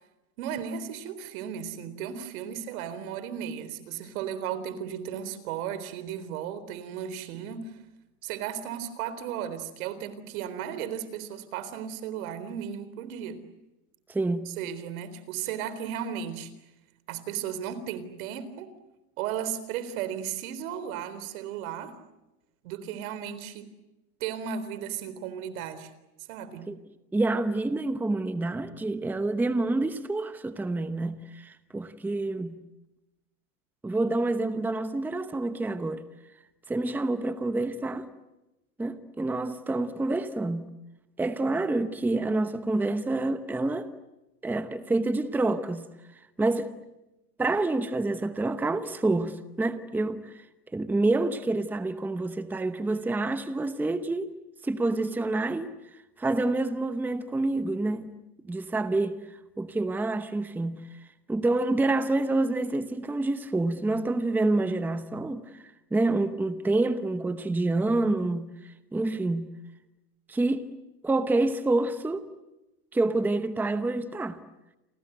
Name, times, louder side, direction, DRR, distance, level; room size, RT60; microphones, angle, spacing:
voice 1, 0.4-7.8 8.2-13.4 14.5-16.5 17.1-18.7 19.2-22.0 22.6-23.7 24.2-25.9 26.3-26.7, right 9 dB, 60° right, 3.9 m, -35 dB
voice 2, 14.1-14.5 26.7-26.8 27.1-32.6 33.8-36.0 36.7-38.1 38.8-40.7 41.2-43.9 44.4-45.9 46.4-46.7 47.4-50.3 50.7-54.4 54.6-55.7 56.2-58.1 58.5-59.2 59.6-60.8 61.3-65.5 65.9-68.5 68.9-69.5 70.3-70.7 71.0-72.3 72.9-74.4, right 2 dB, 5° right, 0.9 m, -27 dB
30.0 x 25.0 x 8.0 m
supercardioid pair, 145°, 46 cm